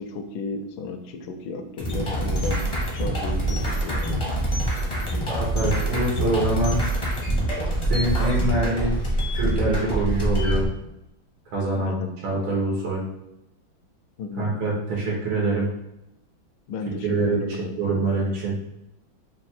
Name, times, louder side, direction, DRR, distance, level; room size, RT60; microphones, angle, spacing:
voice 1, 0.0-4.2 11.7-12.1 14.2-14.5 16.7-17.7, left 3 dB, 80° left, 6 dB, 1.3 m, -34 dB
sound 1, 1.8-10.7, right 1 dB, 30° left, 0.5 m, -25 dB
voice 2, 5.3-6.8 7.8-9.0 9.3-10.6 11.5-13.0 14.4-15.7 17.0-17.4 17.8-18.6, right 2 dB, 85° right, -4 dB, 1.7 m, -25 dB
4.0 x 2.3 x 4.2 m, 0.89 s
omnidirectional pair, 2.2 m